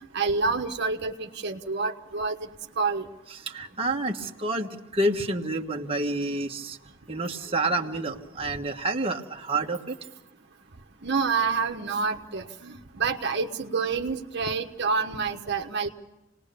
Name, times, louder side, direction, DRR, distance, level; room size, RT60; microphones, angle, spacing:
voice 1, 0.0-2.5 2.8-3.0 11.0-15.9, right 4 dB, 60° right, 4 dB, 1.3 m, -28 dB
voice 2, 3.3-6.8 7.1-10.0, right 2 dB, 30° right, 2 dB, 1.5 m, -29 dB
28.5 x 20.0 x 6.9 m, 1.0 s
head